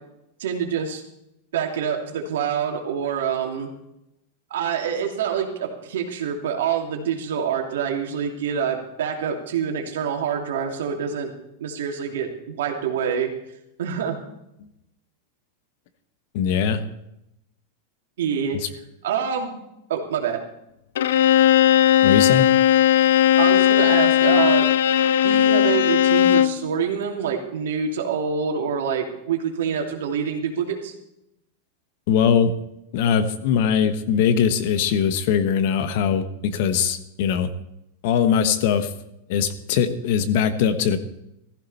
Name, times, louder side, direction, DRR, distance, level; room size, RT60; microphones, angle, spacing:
voice 1, 0.4-1.0 1.5-3.7 4.5-11.3 11.6-13.3 13.8-14.2 18.2-18.6 19.0-19.6 19.9-20.4 23.3-24.7 25.2-30.9, right 7 dB, 80° right, 2 dB, 2.9 m, -26 dB
voice 2, 16.3-16.8 18.5-18.7 22.0-22.5 32.1-32.5 32.9-37.5 38.0-38.9 39.3-41.0, left 7 dB, 50° left, 10 dB, 1.2 m, -21 dB
Bowed string instrument, 21.0-26.6, left 11 dB, 75° left, 0.5 m, -17 dB
15.5 x 15.0 x 4.3 m, 0.85 s
supercardioid pair, 170°, 0 cm